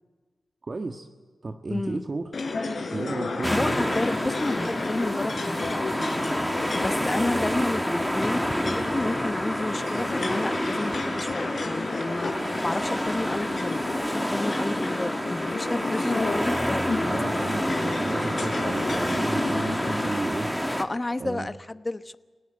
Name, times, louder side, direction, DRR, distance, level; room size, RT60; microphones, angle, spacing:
voice 1, 0.6-1.1 1.4-2.3 2.9-3.8 17.0-20.5 21.2-21.5, right 3 dB, 45° right, 4 dB, 1.5 m, -33 dB
voice 2, 1.7-2.0 3.5-6.2 6.7-12.3 12.6-17.5 20.8-22.2, left 2 dB, 30° left, 12 dB, 1.0 m, -31 dB
sound 1, 2.3-20.2, left 3 dB, 65° left, 4.2 m, -32 dB
sound 2, 3.4-20.8, equal, ahead, 2.1 m, -28 dB
30.0 x 18.0 x 9.0 m, 1.4 s
cardioid pair, 60°, 0 cm